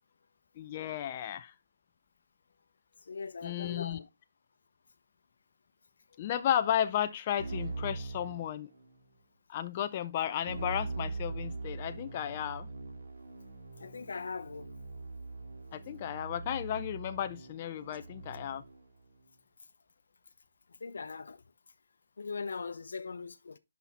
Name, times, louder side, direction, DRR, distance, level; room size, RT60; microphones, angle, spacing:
voice 1, 0.6-1.5 3.4-4.0 6.2-8.7 9.5-12.7 15.7-18.6, left 10 dB, 30° left, 0.4 m, -34 dB
voice 2, 3.1-4.1 6.1-6.2 13.8-14.7 20.8-21.4 22.2-23.6, left 4 dB, 75° left, 0.7 m, -40 dB
Keyboard (musical), 7.4-9.1 10.5-18.8, right 3 dB, 75° right, 2.0 m, -42 dB
6.1 x 5.7 x 4.1 m
hypercardioid pair, 165°, 0 cm